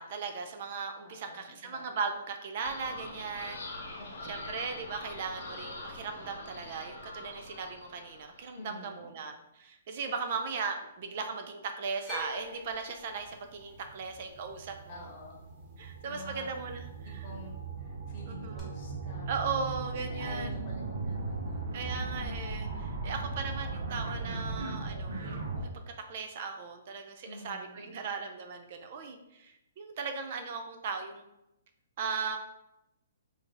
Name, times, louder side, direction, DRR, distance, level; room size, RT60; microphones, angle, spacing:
voice 1, 0.0-3.6 4.2-15.1 15.8-17.2 18.2-18.7 19.3-20.5 21.7-25.7 26.1-31.2 32.0-32.4, right 5 dB, 45° right, 5 dB, 0.3 m, -37 dB
voice 2, 1.0-1.9 4.0-4.5 8.5-9.2 14.9-15.3 16.0-16.5 17.0-19.3 20.1-21.7 27.2-28.0, left 2 dB, 35° left, -2 dB, 1.0 m, -48 dB
sound 1, 2.6-8.5, left 2 dB, 70° left, 0.9 m, -44 dB
sound 2, 12.1-16.3 16.5-17.2 18.6-18.7, left 1 dB, 5° right, 0.8 m, -46 dB
sound 3, 13.1-25.6, right 3 dB, 80° right, 0.8 m, -38 dB
3.3 x 2.6 x 3.7 m, 0.89 s
hypercardioid pair, 160°, 0 cm